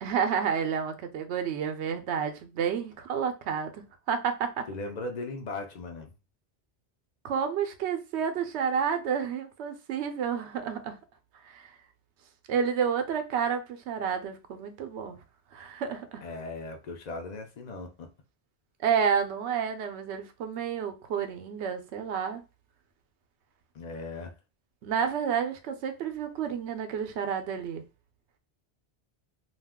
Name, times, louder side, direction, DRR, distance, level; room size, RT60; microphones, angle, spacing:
voice 1, 0.0-4.7 7.2-11.0 11.4-11.7 12.5-15.2 15.5-16.2 18.8-22.4 24.8-27.8, right 7 dB, 90° right, 0.9 m, -30 dB
voice 2, 4.7-6.1 16.2-18.1 23.7-24.3, left 2 dB, 50° left, 0.5 m, -38 dB
2.4 x 2.3 x 3.5 m
omnidirectional pair, 1.1 m